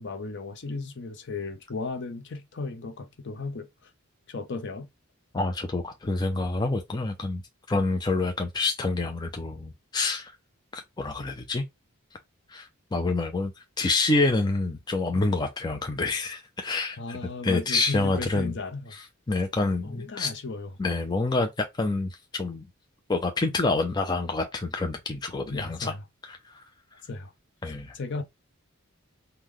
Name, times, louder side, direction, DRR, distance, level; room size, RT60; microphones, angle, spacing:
voice 1, 0.0-3.9 4.3-4.9 17.0-18.9 19.8-20.7 25.5-26.0 27.0-27.3 27.9-28.2, left 3 dB, 55° left, 0.7 m, -35 dB
voice 2, 5.3-7.4 7.7-10.3 10.7-11.6 12.5-13.5 13.8-17.2 17.4-18.6 18.9-20.3 20.8-22.7 23.1-26.0 26.3-26.6 27.6-27.9, left 3 dB, 20° left, 0.4 m, -27 dB
3.7 x 2.2 x 3.0 m
head